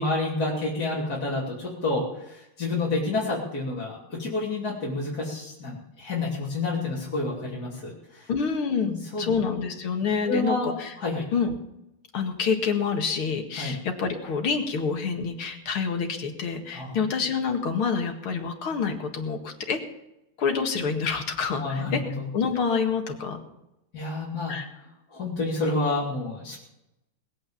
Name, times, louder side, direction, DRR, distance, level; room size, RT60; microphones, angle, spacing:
voice 1, 0.0-8.3 8.8-9.3 10.2-11.3 13.6-13.8 16.7-17.0 21.6-22.2 23.9-24.5 25.1-26.6, left 2 dB, 45° left, -7 dB, 3.6 m, -29 dB
voice 2, 8.3-10.9 11.3-11.5 12.1-19.8 20.4-22.0 22.3-23.4 24.5-24.7, left 5 dB, 80° left, 4 dB, 2.7 m, -27 dB
20.0 x 8.8 x 7.3 m, 0.88 s
omnidirectional pair, 2.3 m